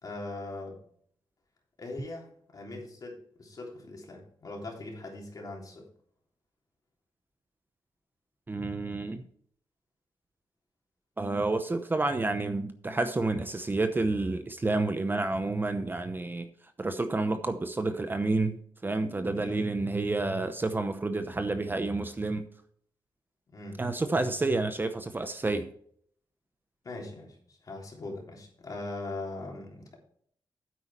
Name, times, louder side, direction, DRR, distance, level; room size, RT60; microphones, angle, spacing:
voice 1, 0.0-0.8 1.8-5.9 19.3-19.7 23.5-23.8 24.1-24.4 26.8-30.0, left 2 dB, 45° left, 0 dB, 3.4 m, -41 dB
voice 2, 8.5-9.2 11.2-16.5 16.8-22.5 23.8-25.7, right 2 dB, 25° right, 9 dB, 0.8 m, -29 dB
9.3 x 8.2 x 4.4 m, 0.63 s
wide cardioid pair, 110°, 9 cm